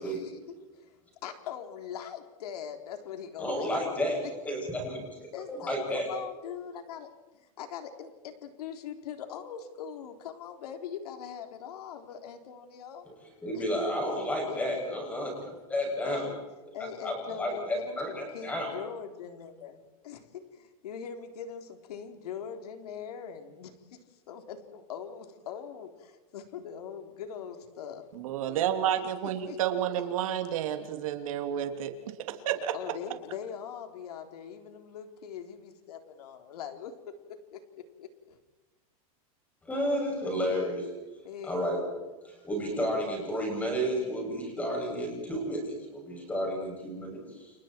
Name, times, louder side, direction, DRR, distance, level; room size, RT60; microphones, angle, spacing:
voice 1, 0.0-0.3 1.2-4.0 4.2-4.3 5.3-13.1 13.5-13.9 14.5-14.6 16.0-16.4 16.7-24.0 24.3-28.0 28.9-29.8 32.5-37.6 38.0-38.4 41.2-41.8, left 8 dB, 85° left, 6 dB, 3.7 m, -42 dB
voice 2, 3.4-4.2 4.4-6.1 13.1-13.2 13.4-16.2 17.0-18.7 39.6-40.9 41.4-41.8 42.2-47.5, equal, 10° left, 0 dB, 7.6 m, -32 dB
voice 3, 28.1-31.9 32.3-32.7, right 10 dB, 60° right, 6 dB, 2.9 m, -30 dB
30.0 x 30.0 x 4.6 m, 1.1 s
supercardioid pair, 175°, 19 cm